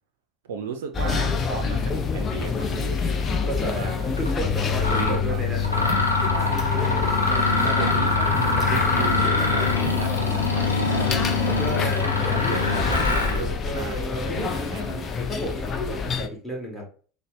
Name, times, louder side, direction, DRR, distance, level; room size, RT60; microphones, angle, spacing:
voice 1, 0.4-4.1 4.9-7.0 7.6-11.5 12.1-15.1, right 6 dB, 70° right, 6 dB, 0.4 m, -36 dB
sound 1, 0.9-16.3, left 6 dB, 35° left, 0.5 m, -26 dB
voice 2, 3.4-5.7 6.4-7.7 11.6-12.1 13.6-14.5 15.3-16.8, right 1 dB, 5° left, -1 dB, 1.7 m, -33 dB
Mechanisms, 4.2-4.3 4.8-5.2 5.6-13.4, left 2 dB, 90° left, 0.6 m, -25 dB
4.0 x 2.1 x 3.3 m, 0.40 s
figure-of-eight pair, 75°, 0 cm